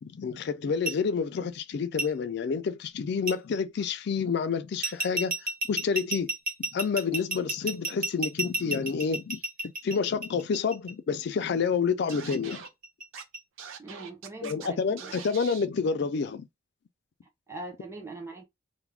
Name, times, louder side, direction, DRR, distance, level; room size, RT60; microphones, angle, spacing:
voice 1, 0.0-5.4 5.7-6.3 6.7-9.4 9.8-12.6 14.4-16.5, left 5 dB, 55° left, 0.3 m, -29 dB
sound 1, 0.9-1.0 2.0-2.1 3.3-3.4 4.8-10.9 12.1-13.4, right 1 dB, 45° right, 0.8 m, -31 dB
Scratching (performance technique), 12.1-12.7 13.1-13.2 13.6-14.7 15.0-15.7, right 7 dB, 80° right, 0.5 m, -43 dB
voice 2, 13.8-15.2 17.5-18.4, right 2 dB, 15° right, 0.5 m, -41 dB
2.3 x 2.1 x 3.2 m
head